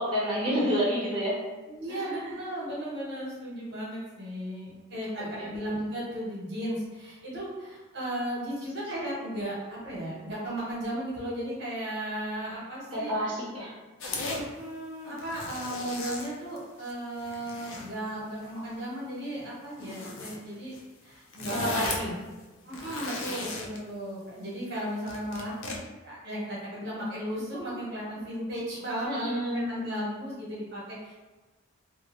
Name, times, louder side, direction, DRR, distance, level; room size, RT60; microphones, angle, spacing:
voice 1, 0.0-1.4 1.9-2.3 5.4-5.5 12.9-13.7 21.6-22.1 29.0-29.8, equal, 25° right, -9 dB, 0.8 m, -29 dB
voice 2, 1.7-13.1 14.3-20.7 21.0-21.9 22.6-25.5 26.0-31.1, equal, 55° right, -6 dB, 0.9 m, -35 dB
sound 1, 14.0-14.4 15.1-16.9 17.2-17.9 18.4-18.7 19.8-20.4 20.7-20.8 21.1-22.1 22.6-23.8 25.1-25.8, left 2 dB, 70° left, 0.4 m, -36 dB
2.4 x 2.4 x 2.9 m, 1.2 s
head